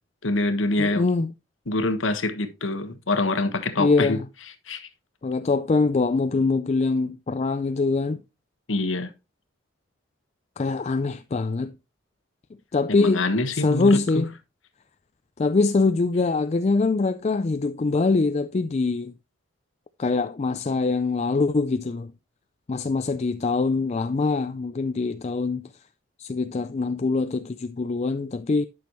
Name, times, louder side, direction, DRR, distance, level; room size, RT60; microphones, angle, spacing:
voice 1, 0.2-1.1 1.7-4.2 4.7-4.9 8.7-9.1 12.9-14.2, left 2 dB, 85° left, 1.3 m, -25 dB
voice 2, 0.8-1.3 3.8-4.3 5.2-8.2 10.6-11.7 12.7-13.2 13.5-14.3 15.4-19.1 20.0-22.1 22.7-25.7 26.2-28.7, left 3 dB, 35° left, 0.4 m, -23 dB
11.5 x 6.3 x 3.0 m
head